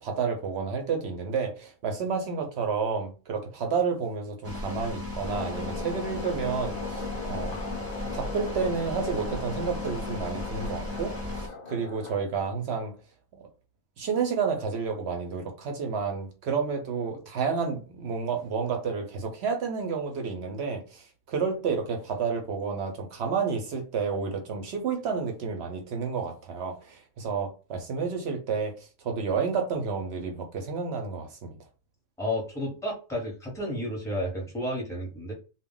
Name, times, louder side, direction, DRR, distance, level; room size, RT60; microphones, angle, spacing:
voice 1, 0.0-7.6 8.1-12.9 13.3-13.4 14.0-31.6, right 5 dB, 60° right, 0.7 m, -30 dB
sound 1, 4.4-11.5, left 2 dB, 20° right, 0.3 m, -36 dB
sound 2, 5.2-12.2, left 4 dB, 70° left, 0.4 m, -38 dB
voice 2, 32.2-35.3, left 1 dB, 5° left, 0.7 m, -32 dB
2.2 x 2.0 x 3.6 m
omnidirectional pair, 1.4 m